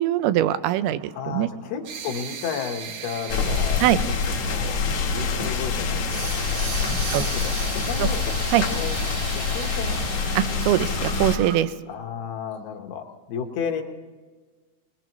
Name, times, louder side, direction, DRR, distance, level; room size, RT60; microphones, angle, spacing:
voice 1, 0.0-1.5 3.8-4.0 7.1-7.3 8.0-8.1 8.5-8.7 10.4-11.7, right 13 dB, 85° right, 13 dB, 2.5 m, -22 dB
sound 1, 1.0-11.6, right 6 dB, 70° right, 2.6 m, -36 dB
voice 2, 1.2-3.9 4.4-6.4 7.0-8.2 8.7-9.0 9.3-10.0 11.9-13.8, left 7 dB, 80° left, 3 dB, 3.1 m, -33 dB
sound 2, 3.3-11.4, left 5 dB, 60° left, 1.6 m, -26 dB
21.5 x 20.5 x 3.0 m, 1.4 s
omnidirectional pair, 4.5 m